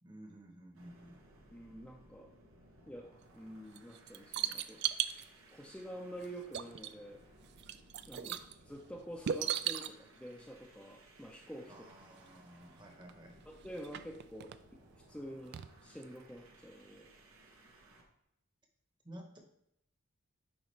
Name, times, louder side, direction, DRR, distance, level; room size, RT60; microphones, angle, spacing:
voice 1, 0.0-1.2 8.1-8.4 11.7-13.4 19.0-19.4, right 1 dB, 20° right, 2 dB, 0.9 m, -53 dB
sound 1, 0.7-18.1, right 1 dB, 80° right, 1.0 m, -61 dB
voice 2, 1.5-2.3 2.9-4.8 5.5-7.2 8.1-8.2 8.7-11.7 13.5-14.8 15.1-17.1, equal, 5° left, -1 dB, 0.5 m, -48 dB
sound 2, 3.8-5.3 6.2-6.3 6.5-7.1 7.4-8.5 9.3-9.9 11.9-12.0 12.3-12.4 13.0-13.1 13.7-14.6 15.5-15.7 16.0-16.1, right 10 dB, 50° right, 0.3 m, -37 dB
9.6 x 4.0 x 3.2 m, 0.79 s
head